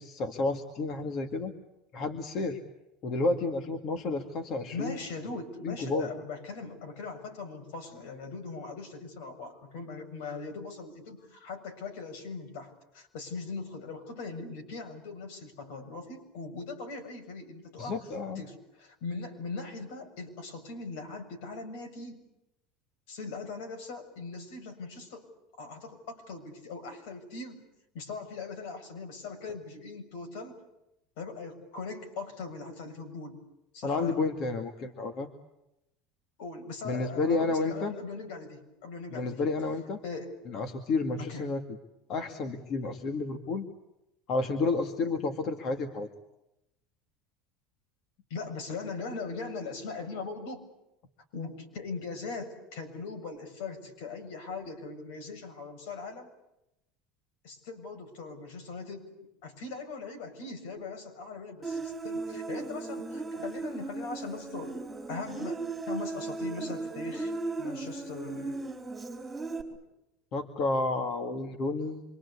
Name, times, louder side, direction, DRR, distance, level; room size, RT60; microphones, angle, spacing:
voice 1, 0.0-1.5 1.9-2.6 3.0-5.0 5.6-6.1 17.8-18.4 33.8-35.3 36.8-37.9 39.1-40.0 40.5-41.6 42.1-43.7 44.3-46.1 70.3-72.0, left 3 dB, 40° left, 6 dB, 2.2 m, -31 dB
voice 2, 4.7-18.1 18.4-22.2 23.1-25.3 25.6-27.6 27.9-30.6 31.2-33.4 33.7-34.2 36.4-39.4 40.0-40.3 41.2-41.5 48.3-50.7 51.3-56.3 57.4-64.8 65.1-67.3 67.6-68.6 69.7-69.8, left 4 dB, 75° left, 5 dB, 7.0 m, -40 dB
Human voice, 61.6-69.6, right 3 dB, 10° right, 4.4 m, -36 dB
27.0 x 25.0 x 8.4 m, 0.87 s
cardioid pair, 155°, 0 cm